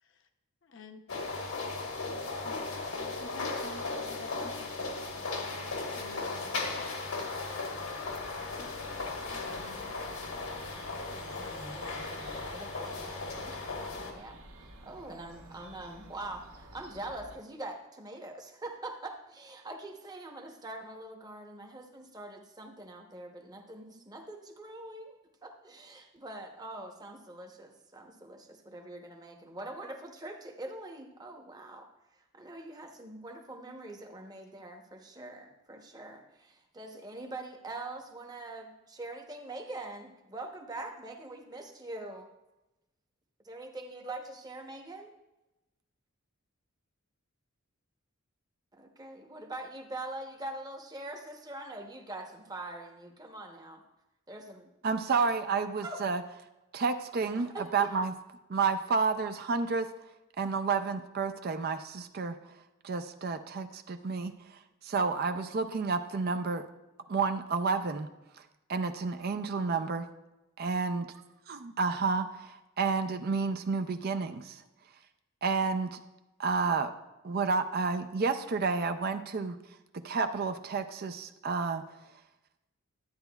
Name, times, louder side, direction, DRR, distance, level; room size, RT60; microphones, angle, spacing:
voice 1, 0.6-1.3 2.4-2.6 3.1-4.7 6.0-6.7 8.6-8.7 9.5-10.0, left 3 dB, 60° left, 7 dB, 0.7 m, -49 dB
sound 1, 1.1-14.1, left 3 dB, 75° left, 1.4 m, -37 dB
sound 2, 8.0-17.4, right 1 dB, 75° right, 1.2 m, -52 dB
voice 2, 11.3-14.4 14.8-31.9 32.3-42.3 43.4-45.2 48.7-53.8 54.3-54.7 55.8-56.0 57.4-57.9, right 2 dB, 20° right, 3 dB, 0.9 m, -44 dB
voice 3, 54.8-56.2 56.7-58.1 58.5-59.9 60.4-62.4 62.8-66.6 67.1-68.1 68.7-70.1 70.6-71.1 71.5-74.6 75.4-76.0 76.4-76.9 77.2-79.6 79.9-81.8, right 4 dB, 45° right, 7 dB, 0.4 m, -30 dB
12.0 x 8.8 x 2.3 m, 0.98 s
head